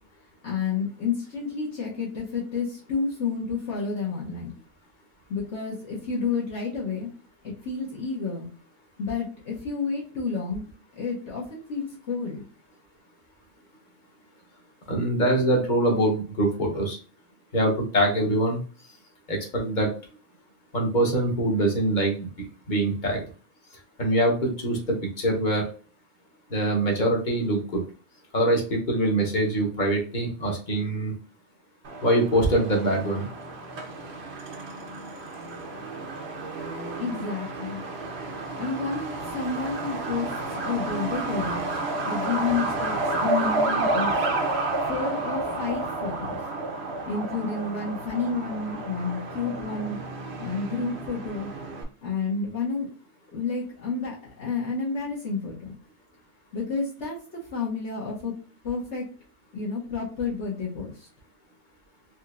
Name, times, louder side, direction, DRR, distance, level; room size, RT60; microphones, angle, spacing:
voice 1, 0.4-4.5 5.3-7.1 7.4-8.5 9.0-10.6 10.9-12.5 37.0-37.8 38.6-44.1 44.9-46.4 47.1-50.0 50.4-51.5 52.0-52.9 53.3-55.7 56.5-58.3 58.6-59.1 59.5-61.1, left 4 dB, 60° left, -5 dB, 1.4 m, -30 dB
voice 2, 14.9-17.0 17.5-18.6 19.3-19.9 20.7-23.2 24.0-25.6 26.5-27.8 28.3-31.1 32.0-33.2, right 1 dB, 35° left, 1 dB, 1.2 m, -24 dB
Truck, 31.8-51.8, right 2 dB, 55° right, 1.0 m, -31 dB
4.4 x 2.8 x 2.5 m, 0.38 s
omnidirectional pair, 1.4 m